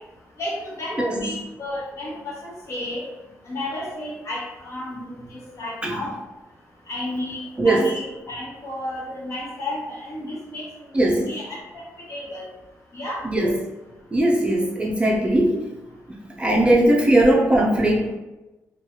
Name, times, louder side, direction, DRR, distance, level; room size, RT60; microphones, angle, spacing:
voice 1, 0.4-3.0 3.5-6.1 6.9-10.7 10.9-11.8 12.1-12.5 12.9-13.2, left 1 dB, 55° left, -6 dB, 1.1 m, -32 dB
voice 2, 10.9-11.3 13.2-13.6 14.1-15.5 16.4-18.1, right 1 dB, 20° right, -2 dB, 0.4 m, -19 dB
3.0 x 2.3 x 2.8 m, 1.1 s
cardioid pair, 115°, 6 cm